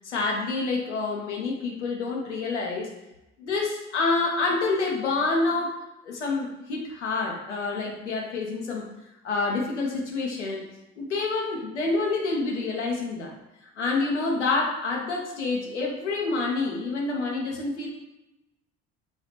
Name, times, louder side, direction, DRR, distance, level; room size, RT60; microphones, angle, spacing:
voice 1, 0.0-2.9 3.4-5.7 6.0-8.9 9.2-10.7 11.0-13.3 13.8-17.9, left 3 dB, 80° left, -1 dB, 0.7 m, -27 dB
4.4 x 2.4 x 3.0 m, 0.95 s
figure-of-eight pair, 55°, 35 cm